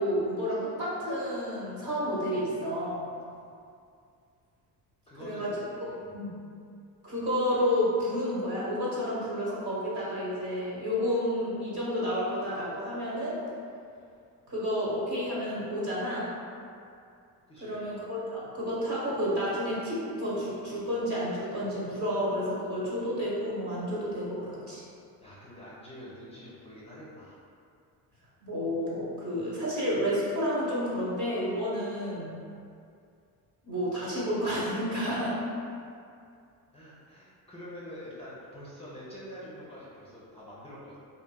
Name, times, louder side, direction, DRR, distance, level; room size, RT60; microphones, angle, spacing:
voice 1, 0.0-3.1 5.2-5.6 6.1-6.3 7.0-13.4 14.5-16.3 17.6-24.8 28.4-32.4 33.6-35.4, equal, 45° right, -7 dB, 1.1 m, -30 dB
voice 2, 5.1-5.5 5.8-6.2 17.5-17.8 25.2-27.4 36.7-41.0, equal, 15° left, -8 dB, 0.5 m, -46 dB
2.6 x 2.5 x 2.2 m, 2.4 s
supercardioid pair, 75°, 40 cm